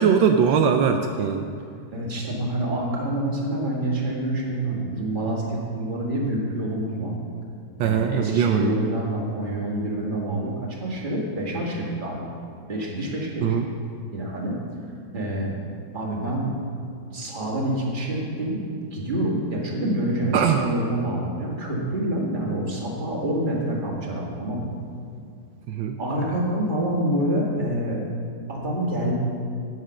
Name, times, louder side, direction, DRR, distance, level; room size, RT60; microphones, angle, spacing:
voice 1, 0.0-1.5 7.8-8.7 13.4-13.6 20.3-20.6 25.7-26.0, right 7 dB, 80° right, 5 dB, 1.3 m, -21 dB
voice 2, 1.9-7.1 7.8-12.2 12.7-13.6 14.1-14.6 15.1-15.5 15.9-16.5 17.1-18.6 18.9-24.7 26.0-28.0 28.5-29.1, right 1 dB, 25° right, -3 dB, 1.9 m, -27 dB
10.0 x 7.9 x 6.4 m, 2.4 s
omnidirectional pair, 2.1 m